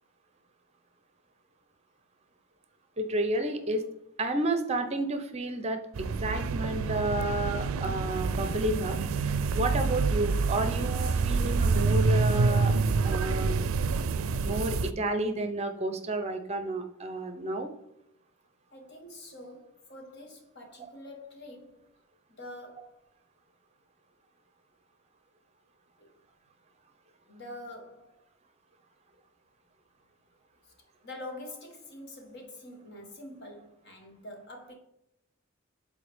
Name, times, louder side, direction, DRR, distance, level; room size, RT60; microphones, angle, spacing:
voice 1, 3.0-3.8 4.2-8.9 9.5-12.7 13.0-13.7 14.4-17.7, right 2 dB, 30° right, 0.6 m, -31 dB
sound 1, 5.9-14.9, right 4 dB, 80° right, 0.4 m, -27 dB
voice 2, 18.7-21.9 22.4-23.1 26.0-26.1 27.3-28.2 31.0-34.7, left 1 dB, 55° left, 1.3 m, -45 dB
7.6 x 4.0 x 3.5 m
head